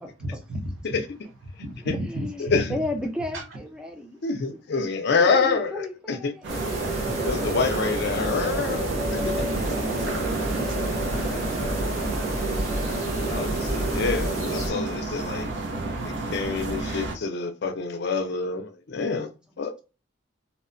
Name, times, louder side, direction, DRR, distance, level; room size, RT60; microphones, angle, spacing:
voice 1, 0.2-0.7 1.5-2.6 3.3-3.4 4.1-4.2, equal, 90° right, 0.9 m, -37 dB
voice 2, 2.1-4.2 4.5-4.6 5.2-6.8, left 1 dB, 5° right, 0.5 m, -34 dB
voice 3, 4.2-6.2 7.0-9.5 13.3-15.5 16.0-19.3 19.6-19.7, left 4 dB, 60° left, 0.5 m, -27 dB
sound 1, 6.4-17.2, right 2 dB, 65° right, 0.6 m, -31 dB
sound 2, 6.5-14.7, right 1 dB, 40° right, 1.0 m, -29 dB
2.8 x 2.1 x 2.5 m
head